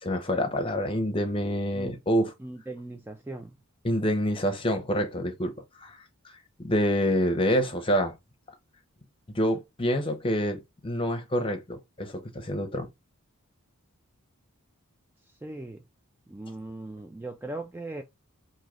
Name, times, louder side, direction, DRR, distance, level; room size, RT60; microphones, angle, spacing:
voice 1, 0.0-2.3 3.8-5.5 5.8-6.0 6.6-8.1 9.3-12.9, equal, 25° left, 0.7 m, -27 dB
voice 2, 2.4-3.5 15.4-15.8 16.3-18.0, right 2 dB, 10° right, 0.3 m, -39 dB
3.1 x 2.7 x 3.7 m
head